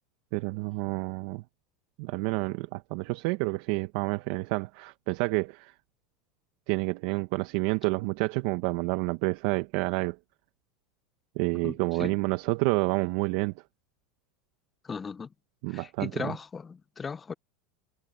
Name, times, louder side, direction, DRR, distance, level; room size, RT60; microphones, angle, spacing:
voice 1, 0.3-1.4 2.0-5.7 6.7-10.2 11.3-13.5 15.6-16.4, right 24 dB, 65° right, 1.4 m, -29 dB
voice 2, 14.8-15.3 15.7-17.3, left 5 dB, 25° left, 0.7 m, -37 dB
hypercardioid pair, 100°, 0 cm